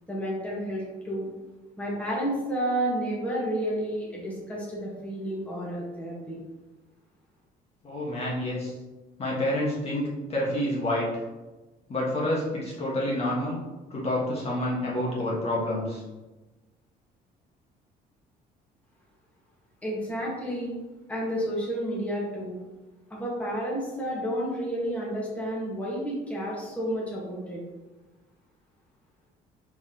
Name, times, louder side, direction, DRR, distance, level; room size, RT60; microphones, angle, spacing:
voice 1, 0.1-1.3 1.8-6.4 19.8-20.7 21.1-22.6 23.1-27.6, right 1 dB, 10° left, -5 dB, 1.5 m, -31 dB
voice 2, 7.8-8.7 9.2-11.1 11.9-13.6 13.9-16.0, left 1 dB, 35° left, -5 dB, 1.3 m, -28 dB
4.5 x 3.6 x 2.9 m, 1.1 s
cardioid pair, 110°, 17 cm